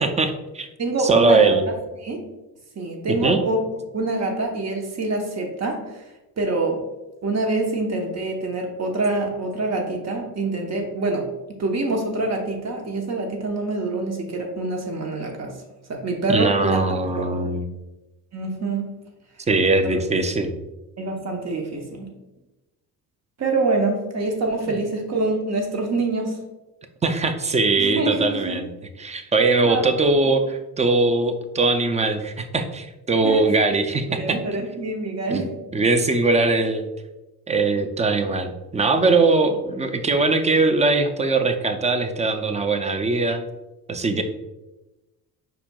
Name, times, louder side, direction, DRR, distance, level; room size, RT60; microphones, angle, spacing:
voice 1, 0.0-0.7 1.0-1.6 3.1-3.4 16.3-17.7 19.5-20.5 27.0-28.7 29.0-34.4 35.3-35.5 35.7-36.9 37.5-43.4 43.9-44.2, right 3 dB, 20° right, 8 dB, 0.4 m, -21 dB
voice 2, 0.8-1.6 2.0-2.2 2.8-3.6 3.9-5.8 6.4-6.8 7.2-11.3 11.6-15.5 15.9-17.3 18.3-19.0 19.7-20.0 21.0-22.1 23.4-26.4 27.8-28.7 29.6-29.8 33.2-33.4 34.1-35.5, right 2 dB, 45° right, 2 dB, 1.0 m, -25 dB
5.1 x 4.4 x 2.3 m, 1.0 s
cardioid pair, 95°, 37 cm